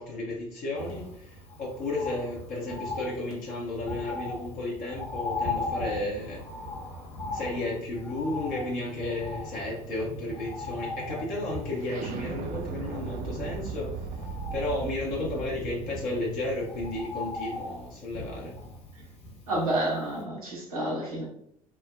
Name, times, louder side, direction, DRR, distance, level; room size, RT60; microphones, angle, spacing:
voice 1, 0.0-6.4 7.3-14.2 14.5-18.6, left 2 dB, 50° left, -3 dB, 0.8 m, -33 dB
Bird, 0.8-19.9 20.2-20.3, left 2 dB, 35° left, 1.0 m, -39 dB
sound 1, 7.7-17.4, right 5 dB, 45° right, 0.4 m, -39 dB
voice 2, 19.5-21.2, right 1 dB, 85° right, -4 dB, 1.0 m, -29 dB
3.3 x 2.1 x 2.2 m, 0.69 s
figure-of-eight pair, 65°, 18 cm